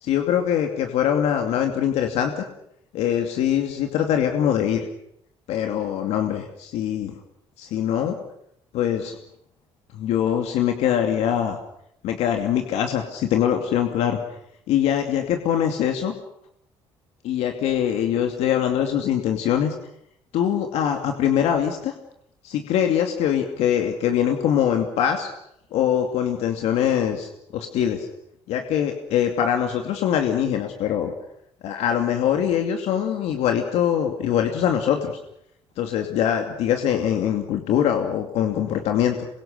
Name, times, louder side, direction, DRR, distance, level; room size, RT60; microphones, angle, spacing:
voice 1, 0.0-2.4 2.9-4.9 5.5-7.1 7.6-8.2 8.7-9.2 9.9-11.6 12.0-14.2 14.7-16.1 17.2-19.7 20.3-21.9 22.4-25.3 25.7-28.1 28.5-31.1 31.6-35.2 35.8-39.3, left 9 dB, 85° left, 4 dB, 2.6 m, -23 dB
27.5 x 23.5 x 6.8 m, 0.76 s
cardioid pair, 135°, 11 cm